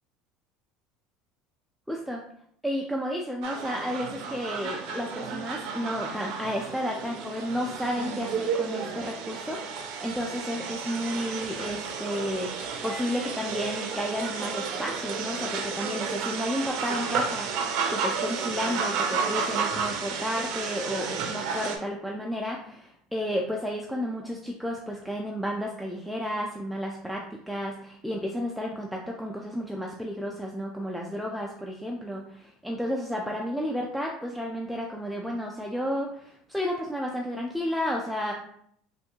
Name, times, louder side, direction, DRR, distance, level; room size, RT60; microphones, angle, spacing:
voice 1, 1.9-2.2 2.6-12.5 12.8-38.3, equal, ahead, -1 dB, 0.4 m, -32 dB
sound 1, 3.4-21.8, right 5 dB, 65° right, 0.6 m, -32 dB
3.5 x 2.6 x 2.8 m, 0.66 s
supercardioid pair, 110°, 0 cm